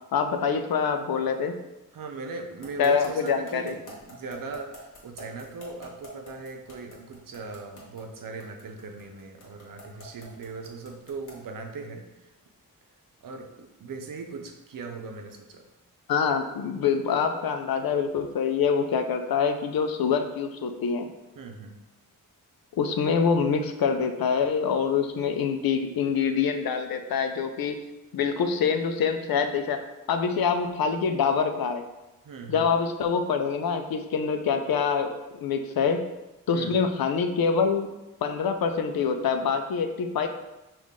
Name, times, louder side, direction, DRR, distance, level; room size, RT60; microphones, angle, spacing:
voice 1, 0.1-1.5 2.8-3.8 16.1-21.1 22.8-27.8 28.1-29.8 30.1-31.8 32.5-36.1 36.5-37.9 38.2-40.3, left 6 dB, 80° left, 7 dB, 0.5 m, -25 dB
voice 2, 1.9-12.3 13.2-15.6 21.4-21.8 32.2-32.7 36.5-36.8, right 4 dB, 65° right, 4 dB, 0.7 m, -39 dB
sound 1, 2.6-11.5, equal, 55° left, 1.4 m, -46 dB
5.5 x 2.5 x 3.6 m, 0.98 s
wide cardioid pair, 130°, 36 cm